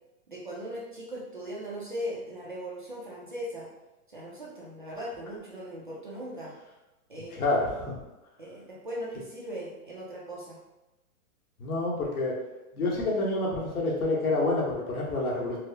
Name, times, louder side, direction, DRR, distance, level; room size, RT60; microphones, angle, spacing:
voice 1, 0.3-3.7 4.1-6.6 7.1-7.4 8.4-10.6, equal, 35° right, -5 dB, 0.4 m, -38 dB
voice 2, 7.3-8.0 11.6-12.3 12.7-15.6, left 2 dB, 70° left, -3 dB, 1.3 m, -28 dB
4.6 x 2.0 x 2.8 m, 1.0 s
hypercardioid pair, 175°, 45 cm